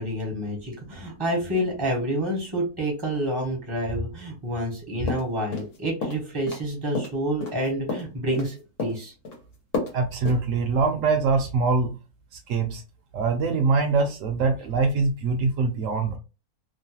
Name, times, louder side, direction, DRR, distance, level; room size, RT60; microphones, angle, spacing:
voice 1, 0.0-9.1, equal, 25° right, 0.6 m, -28 dB
sound 1, 5.1-5.8 6.0-6.6 7.0-8.5 8.8-9.4 9.7-10.0 10.3-10.4, left 3 dB, 90° left, 1.5 m, -31 dB
voice 2, 9.9-11.9 12.5-12.8 13.1-16.2, right 4 dB, 70° right, 0.8 m, -23 dB
3.0 x 2.1 x 2.7 m
omnidirectional pair, 1.6 m